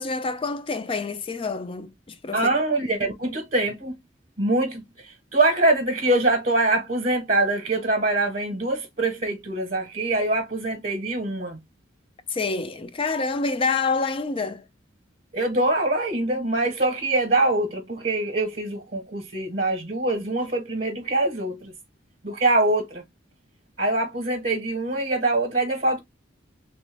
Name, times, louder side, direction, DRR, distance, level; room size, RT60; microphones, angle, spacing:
voice 1, 0.0-2.5 12.3-14.6, left 4 dB, 30° left, 0.4 m, -27 dB
voice 2, 2.3-4.0 4.4-11.6 15.3-21.7 22.2-23.0 23.8-26.0, right 2 dB, 50° right, 0.8 m, -24 dB
3.1 x 2.1 x 3.2 m
head